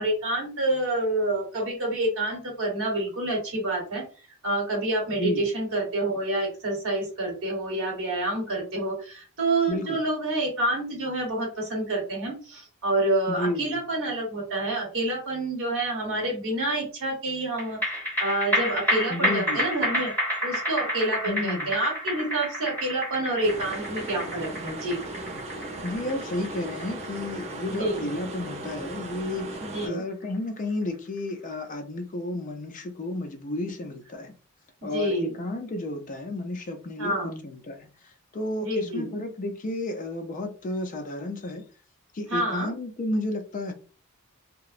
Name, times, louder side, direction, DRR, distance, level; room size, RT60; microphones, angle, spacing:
voice 1, 0.0-4.0 4.4-20.1 20.4-25.0 27.7-28.0 29.6-30.0 34.8-35.3 37.0-37.4 38.6-39.1 42.3-42.7, right 2 dB, 65° right, 1.0 m, -28 dB
voice 2, 5.1-5.5 9.7-10.0 13.3-13.8 19.1-19.6 21.3-21.8 25.8-34.3 34.8-37.1 37.4-37.9 38.3-41.6 42.1-43.7, left 1 dB, 35° left, 0.4 m, -32 dB
sound 1, 17.6-30.2 30.6-30.7, equal, 5° left, 1.4 m, -30 dB
sound 2, 23.4-29.9, right 2 dB, 30° right, 0.5 m, -37 dB
2.8 x 2.0 x 2.4 m
head